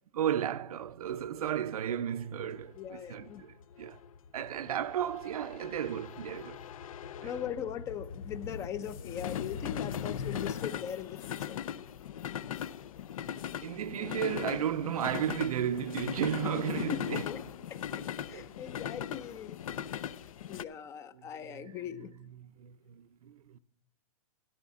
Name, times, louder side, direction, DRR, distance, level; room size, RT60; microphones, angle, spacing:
voice 1, 0.1-4.0 4.3-6.7 7.2-7.3 13.6-17.2 18.3-18.5 21.2-23.6, right 10 dB, 90° right, 0.6 m, -34 dB
sound 1, 1.1-20.6, left 9 dB, 75° left, 0.6 m, -39 dB
voice 2, 2.4-3.4 7.2-11.6 16.9-17.4 17.7-19.6 20.0-20.2 20.5-22.1, left 9 dB, 15° left, 0.4 m, -40 dB
12.5 x 12.0 x 3.6 m
hypercardioid pair, 160°, 18 cm